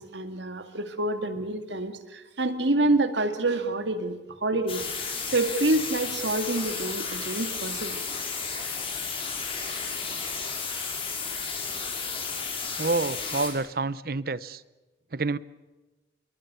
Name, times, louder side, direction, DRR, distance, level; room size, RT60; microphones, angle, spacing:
voice 1, 0.0-8.0, right 2 dB, 85° right, 9 dB, 2.4 m, -27 dB
sound 1, 4.7-13.5, left 5 dB, 30° left, 5.7 m, -33 dB
voice 2, 12.8-14.6 15.1-15.4, right 3 dB, 55° right, 18 dB, 0.8 m, -28 dB
26.0 x 23.0 x 6.9 m, 1.2 s
head